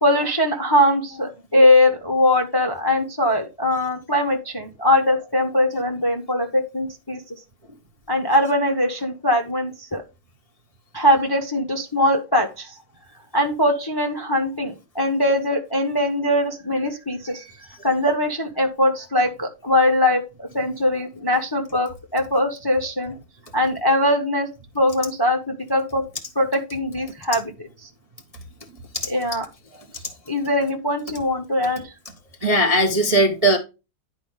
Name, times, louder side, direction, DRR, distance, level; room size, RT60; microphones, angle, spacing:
voice 1, 0.0-7.2 8.1-10.0 10.9-12.7 13.3-17.5 17.8-23.1 23.5-24.5 24.7-26.1 26.4-27.5 29.1-29.4 30.3-31.9, left 1 dB, 20° left, 0.6 m, -21 dB
voice 2, 32.4-33.6, right 1 dB, 30° right, 0.7 m, -19 dB
10.5 x 4.9 x 3.6 m
omnidirectional pair, 2.0 m